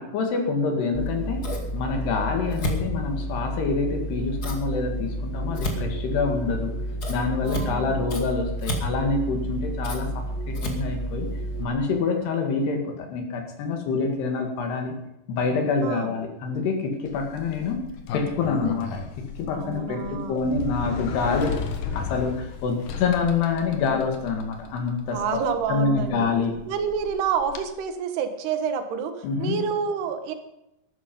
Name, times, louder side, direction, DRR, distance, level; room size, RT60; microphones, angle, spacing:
voice 1, 0.0-1.4 1.7-6.7 7.1-11.3 11.6-14.9 15.3-17.8 18.1-19.0 19.4-21.5 21.9-25.2 25.7-26.6 29.2-29.6, left 4 dB, 85° left, 3 dB, 4.1 m, -26 dB
Scissors, 0.9-11.6, right 1 dB, 30° left, 2.0 m, -30 dB
voice 2, 7.4-8.0 15.8-16.1 19.5-20.4 23.9-24.0 25.1-26.3 26.7-30.3, right 6 dB, 80° right, 7 dB, 3.5 m, -28 dB
Sliding door, 17.1-27.6, left 5 dB, 65° left, 2.9 m, -35 dB
14.0 x 13.0 x 5.4 m, 0.86 s
omnidirectional pair, 4.6 m